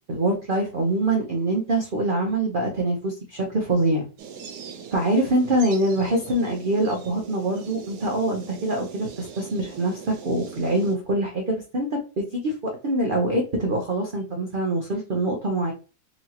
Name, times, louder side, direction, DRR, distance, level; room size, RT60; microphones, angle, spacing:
voice 1, 0.1-4.0 4.9-15.7, right 1 dB, 55° right, 0 dB, 0.5 m, -24 dB
sound 1, 4.2-11.0, right 7 dB, 70° right, 1.3 m, -41 dB
4.2 x 2.8 x 2.9 m, 0.34 s
omnidirectional pair, 1.9 m